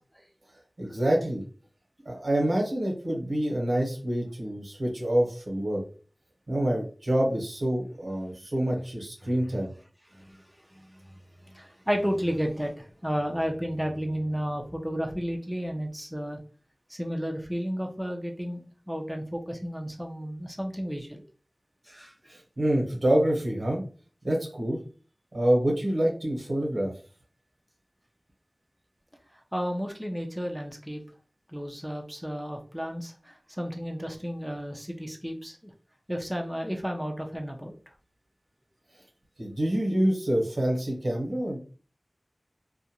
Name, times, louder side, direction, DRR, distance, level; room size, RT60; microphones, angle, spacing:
voice 1, 0.8-1.4 2.0-5.8 6.5-9.7 22.6-23.8 24.2-24.8 25.3-26.9 39.4-41.6, right 1 dB, 90° right, -2 dB, 1.0 m, -26 dB
voice 2, 11.5-16.4 16.9-18.6 18.9-21.2 21.9-22.1 29.5-31.0 31.5-35.6 36.1-37.7, equal, 5° right, 2 dB, 0.5 m, -32 dB
2.4 x 2.1 x 2.9 m, 0.38 s
wide cardioid pair, 45°, 0 cm